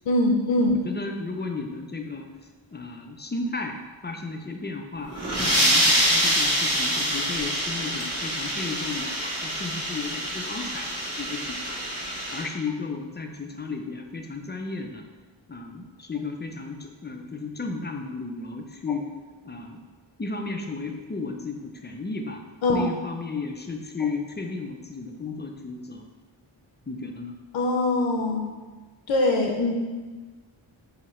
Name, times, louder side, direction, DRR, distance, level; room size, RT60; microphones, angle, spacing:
voice 1, 0.1-0.7 22.6-22.9 27.5-28.4 29.1-29.7, left 2 dB, 70° left, 1 dB, 0.6 m, -22 dB
voice 2, 0.7-2.3 2.7-5.1 5.4-11.8 12.3-15.0 15.5-19.1 19.4-19.8 20.2-22.4 22.7-26.1 26.9-27.4, left 4 dB, 25° left, 4 dB, 0.4 m, -34 dB
sound 1, 5.0-12.5, equal, 30° right, 1.4 m, -25 dB
4.8 x 2.8 x 3.1 m, 1.3 s
wide cardioid pair, 45°, 47 cm